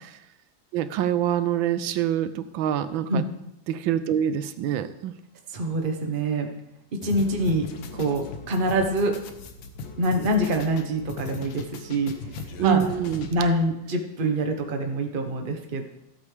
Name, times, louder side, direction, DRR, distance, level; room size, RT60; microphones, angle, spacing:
voice 1, 0.7-3.2 3.7-5.1 12.6-13.3, right 10 dB, 85° right, 12 dB, 1.4 m, -25 dB
voice 2, 5.5-6.5 7.0-7.7 8.0-9.1 10.0-12.1 12.6-12.8 13.3-15.8, right 1 dB, 35° right, 3 dB, 1.1 m, -25 dB
sound 1, 7.0-13.6, left 4 dB, 80° left, 1.6 m, -38 dB
15.0 x 8.3 x 3.4 m, 0.86 s
omnidirectional pair, 2.1 m